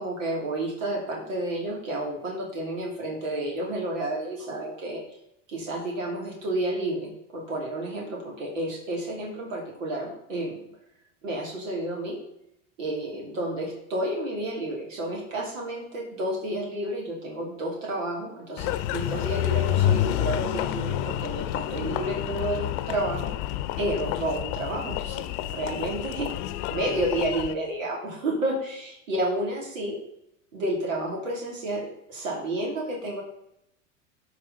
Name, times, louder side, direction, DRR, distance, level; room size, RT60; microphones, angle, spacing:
voice 1, 0.0-5.0 5.5-10.6 11.2-12.2 12.8-23.3 23.8-25.2 25.5-30.0 30.5-33.2, right 1 dB, 85° right, -1 dB, 2.7 m, -31 dB
Engine, 18.6-27.5, left 13 dB, 60° left, 0.8 m, -29 dB
13.5 x 5.0 x 3.9 m, 0.79 s
hypercardioid pair, 95°, 38 cm